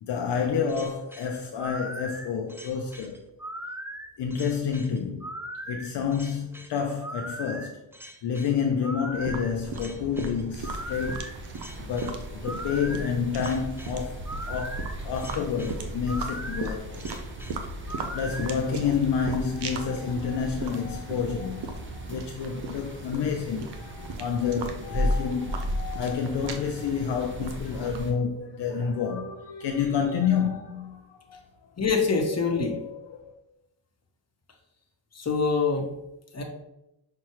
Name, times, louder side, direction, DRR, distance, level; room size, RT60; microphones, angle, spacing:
voice 1, 0.0-3.2 4.2-5.3 5.7-7.8 8.2-11.3 11.8-14.2 14.5-17.2 17.9-31.4 32.6-33.3, left 6 dB, 65° left, 0.5 m, -29 dB
sound 1, 0.7-18.6, right 1 dB, 5° right, 0.4 m, -39 dB
sound 2, 9.1-28.1, right 3 dB, 60° right, 0.6 m, -38 dB
sound 3, 10.6-28.1, equal, 25° right, 0.8 m, -38 dB
voice 2, 31.8-32.8 35.1-35.9 36.3-36.4, left 4 dB, 35° left, 0.9 m, -25 dB
5.7 x 2.2 x 2.9 m
cardioid pair, 55°, 46 cm